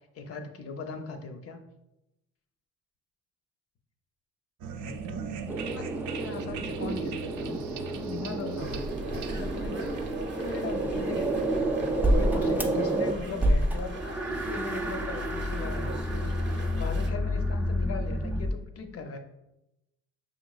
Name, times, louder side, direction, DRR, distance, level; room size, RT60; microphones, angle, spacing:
voice 1, 0.1-1.6 4.7-5.9 6.1-8.9 9.3-9.9 10.3-11.7 12.1-19.2, left 4 dB, 50° left, 6 dB, 0.6 m, -39 dB
sound 1, 4.6-12.1, right 6 dB, 75° right, 0.5 m, -40 dB
sound 2, 5.5-13.1 13.4-18.5, right 1 dB, 5° right, 0.4 m, -29 dB
sound 3, 8.6-17.1, right 2 dB, 40° right, 0.7 m, -40 dB
5.4 x 3.1 x 2.3 m, 0.91 s
cardioid pair, 90°, 30 cm